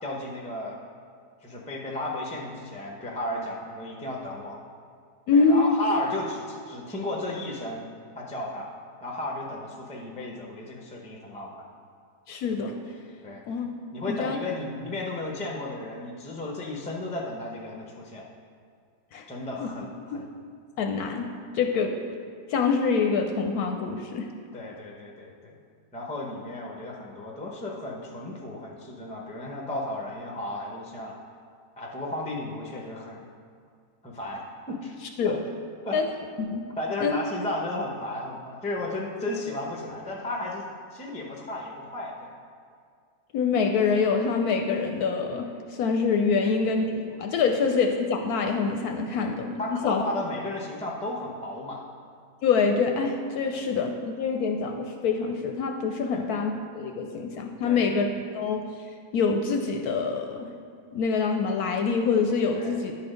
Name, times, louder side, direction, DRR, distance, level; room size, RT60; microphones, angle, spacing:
voice 1, 0.0-0.8 1.4-4.6 5.3-7.9 8.2-8.7 9.0-11.7 13.2-13.4 13.9-18.3 19.3-20.3 21.8-21.9 24.5-25.5 25.9-31.2 31.8-33.2 34.0-35.0 35.2-35.4 35.8-36.0 36.8-42.3 46.4-46.5 47.4-47.5 49.2-49.3 49.6-51.8 53.5-53.6 56.1-56.3 57.6-58.0 62.5-62.7, left 1 dB, 10° left, -1 dB, 0.4 m, -34 dB
voice 2, 5.3-5.8 12.3-12.7 13.5-13.7 14.1-14.4 19.1-19.2 19.6-19.7 20.1-20.2 20.8-21.3 21.5-21.9 22.5-24.3 35.2-35.4 35.9-36.1 36.4-36.6 37.0-37.2 43.3-49.6 49.8-50.0 52.4-58.1 58.3-58.6 59.1-60.5 60.9-62.9, left 5 dB, 70° left, 4 dB, 1.0 m, -25 dB
10.0 x 4.3 x 5.0 m, 2.1 s
omnidirectional pair, 1.8 m